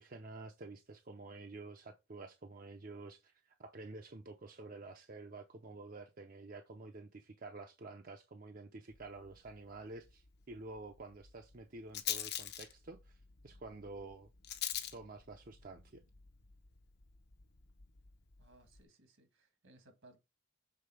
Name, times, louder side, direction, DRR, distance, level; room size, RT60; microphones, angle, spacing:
voice 1, 0.0-13.2 13.4-14.3 14.9-16.0, right 3 dB, 45° right, 0.6 m, -50 dB
Rattle, 8.9-18.8, left 11 dB, 50° left, 0.7 m, -46 dB
voice 2, 18.4-20.2, right 2 dB, 75° right, 1.6 m, -63 dB
6.9 x 3.8 x 4.7 m
head